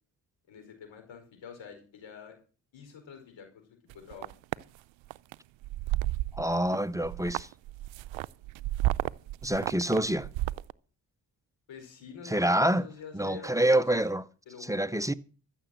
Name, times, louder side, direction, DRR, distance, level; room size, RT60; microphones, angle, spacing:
voice 1, 0.5-2.4 2.7-3.7 3.9-4.4 11.7-14.0 14.5-15.2, left 6 dB, 80° left, 4.9 m, -47 dB
sound 1, 3.9-4.6 5.1-5.3 5.6-6.8 7.0-10.7, right 16 dB, 85° right, 0.5 m, -32 dB
voice 2, 6.3-7.5 9.4-10.3 12.3-12.8 13.1-14.2 14.6-15.1, right 1 dB, 5° right, 0.6 m, -26 dB
14.0 x 7.0 x 7.8 m
cardioid pair, 65°, 45 cm